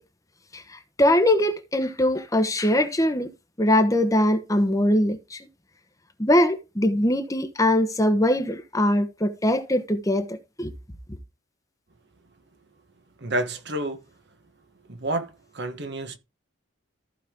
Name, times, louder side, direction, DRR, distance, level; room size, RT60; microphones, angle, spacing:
voice 1, 0.5-3.3 3.6-5.4 6.2-10.7, left 1 dB, 15° left, 1.1 m, -22 dB
voice 2, 13.2-14.0 14.9-16.2, right 1 dB, 55° right, 1.2 m, -29 dB
14.5 x 5.4 x 3.7 m
head